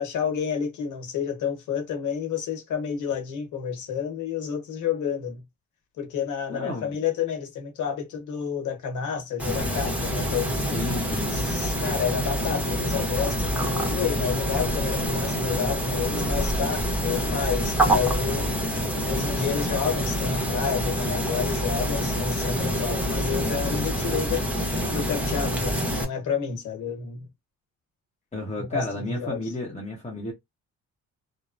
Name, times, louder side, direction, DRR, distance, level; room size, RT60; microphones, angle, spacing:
voice 1, 0.0-5.4 6.0-10.5 11.3-18.5 19.0-27.3 28.7-29.4, left 7 dB, 80° left, 1.2 m, -30 dB
voice 2, 6.5-6.9 10.6-11.4 28.3-30.3, left 2 dB, 25° left, 1.1 m, -32 dB
sound 1, 9.4-26.0, equal, 5° right, 1.1 m, -26 dB
2.8 x 2.2 x 2.5 m
cardioid pair, 90°, 30 cm